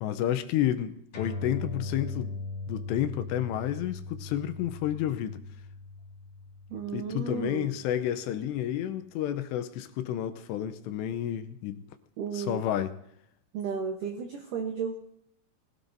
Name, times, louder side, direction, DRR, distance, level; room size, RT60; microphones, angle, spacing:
voice 1, 0.0-2.4 2.7-5.4 6.9-11.8 12.3-12.9, left 11 dB, 80° left, 2.7 m, -30 dB
sound 1, 1.1-8.0, left 3 dB, 35° left, 4.2 m, -39 dB
voice 2, 6.7-7.7 12.2-12.6 13.5-15.0, right 6 dB, 90° right, 1.8 m, -33 dB
21.5 x 16.0 x 2.6 m
omnidirectional pair, 5.3 m